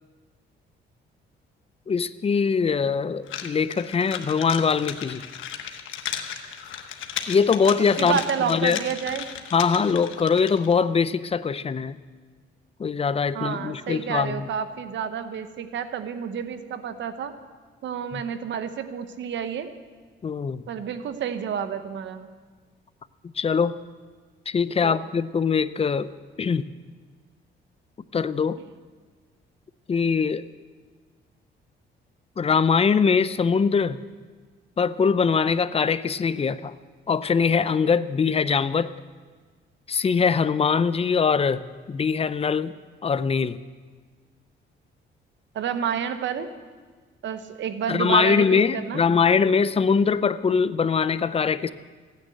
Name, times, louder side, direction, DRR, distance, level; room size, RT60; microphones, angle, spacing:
voice 1, 1.9-5.2 7.3-8.2 8.5-8.8 9.5-12.0 12.8-14.5 18.1-18.2 20.2-20.6 23.4-23.8 24.5-26.1 26.4-26.7 28.1-28.6 29.9-30.4 32.4-34.0 34.8-36.7 37.1-38.9 39.9-42.7 43.0-43.6 47.9-51.7, left 5 dB, 30° left, 15 dB, 0.5 m, -22 dB
sound 1, 3.3-10.8, left 9 dB, 80° left, 1.2 m, -35 dB
voice 2, 8.0-9.3 13.3-17.3 17.8-19.7 20.7-22.3 24.8-25.0 45.5-46.5 47.2-49.0, right 7 dB, 70° right, 10 dB, 1.1 m, -29 dB
15.0 x 9.7 x 7.8 m, 1.5 s
cardioid pair, 90°, 20 cm